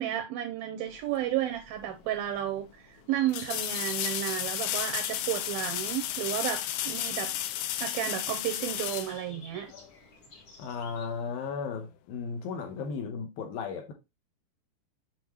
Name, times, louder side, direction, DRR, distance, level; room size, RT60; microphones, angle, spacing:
voice 1, 0.0-7.3 7.8-9.7, right 11 dB, 85° right, 2.2 m, -32 dB
sound 1, 0.8-11.5, left 3 dB, 45° left, 1.7 m, -53 dB
sound 2, 1.9-2.0 3.3-9.9 12.8-12.9, left 12 dB, 85° left, 2.8 m, -33 dB
voice 2, 10.6-13.9, left 5 dB, 70° left, 2.5 m, -35 dB
7.5 x 5.3 x 3.0 m
omnidirectional pair, 4.9 m